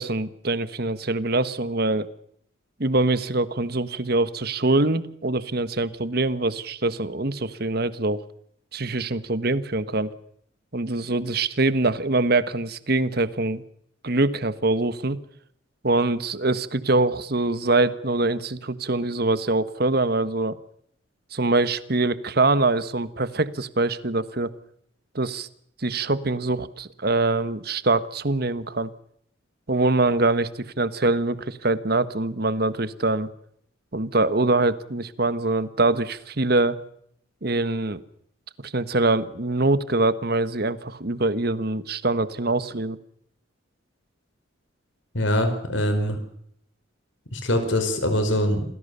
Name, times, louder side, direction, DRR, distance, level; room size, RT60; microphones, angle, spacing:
voice 1, 0.0-2.1 2.8-8.2 8.7-10.1 10.7-13.6 14.0-15.2 15.8-20.6 21.3-24.5 25.1-25.5 25.8-28.9 29.7-33.3 33.9-36.8 37.4-38.0 38.6-43.0, right 2 dB, 50° right, 14 dB, 1.4 m, -24 dB
voice 2, 45.1-46.2 47.3-48.6, left 1 dB, 70° left, 7 dB, 4.7 m, -23 dB
28.0 x 19.5 x 6.9 m, 0.69 s
head